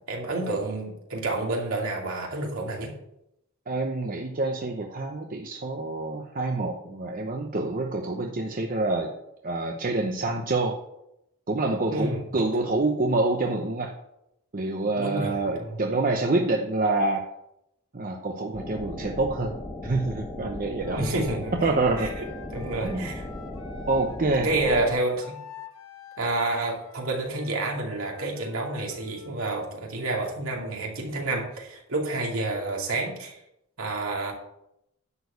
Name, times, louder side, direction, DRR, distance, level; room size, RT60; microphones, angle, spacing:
voice 1, 0.1-2.9 11.9-12.5 14.7-15.8 20.9-22.1 22.5-23.3 24.4-25.4 26.2-33.4 33.8-34.3, right 2 dB, 70° right, -1 dB, 2.7 m, -29 dB
voice 2, 3.7-9.1 9.4-10.8 11.5-13.9 14.5-17.2 17.9-19.5 19.8-21.1 21.6-22.1 22.6-23.1 23.9-24.5, right 2 dB, 40° right, 3 dB, 0.8 m, -27 dB
sound 1, 18.5-24.9, left 1 dB, 20° left, 1.5 m, -37 dB
Wind instrument woodwind instrument, 20.8-29.4, left 4 dB, 65° left, 1.5 m, -46 dB
11.0 x 4.6 x 8.1 m, 0.81 s
head